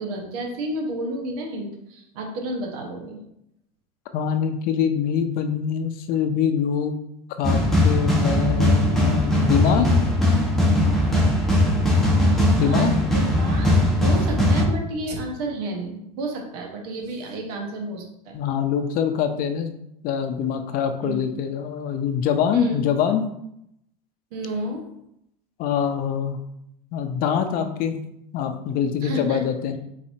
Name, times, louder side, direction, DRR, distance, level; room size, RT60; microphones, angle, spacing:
voice 1, 0.0-3.2 9.7-9.9 12.6-13.8 14.0-18.4 21.0-21.3 22.5-22.8 24.3-24.9 29.0-29.4, right 1 dB, 70° right, 1 dB, 1.3 m, -31 dB
voice 2, 4.1-7.0 7.4-9.9 12.5-12.9 18.3-19.7 20.0-23.3 25.6-26.4 26.9-28.0 28.3-29.8, left 8 dB, 45° left, 7 dB, 0.6 m, -24 dB
sound 1, 7.4-14.6, left 1 dB, ahead, 1.2 m, -19 dB
4.2 x 4.0 x 2.8 m, 0.77 s
supercardioid pair, 115°, 20 cm